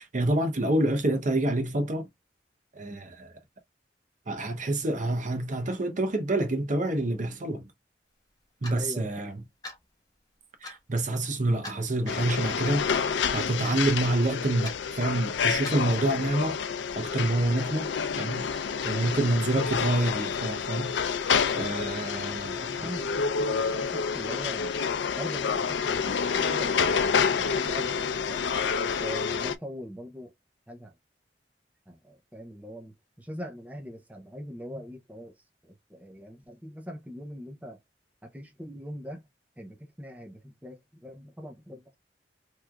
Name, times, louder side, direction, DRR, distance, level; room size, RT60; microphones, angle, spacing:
voice 1, 0.0-2.1 2.7-3.3 4.3-7.7 8.6-9.4 10.6-12.9 13.3-16.6 17.0-17.9 18.2-18.5 18.8-21.0 21.5-22.9, right 1 dB, 45° right, 0.8 m, -27 dB
Clock, 8.6-8.8 9.6-9.8 10.6-10.8 11.6-11.8 12.6-12.8 13.6-13.9 14.6-14.8 15.6-15.9, left 2 dB, 20° left, 1.1 m, -40 dB
voice 2, 8.7-9.3 18.9-19.2 22.3-24.8 25.1-28.4 28.8-30.3 30.7-30.9 31.9-35.3 35.6-37.8 38.2-39.2 39.6-41.8, equal, 10° right, 0.6 m, -42 dB
sound 1, 12.1-29.5, left 6 dB, 80° left, 0.4 m, -28 dB
3.5 x 3.1 x 2.2 m
head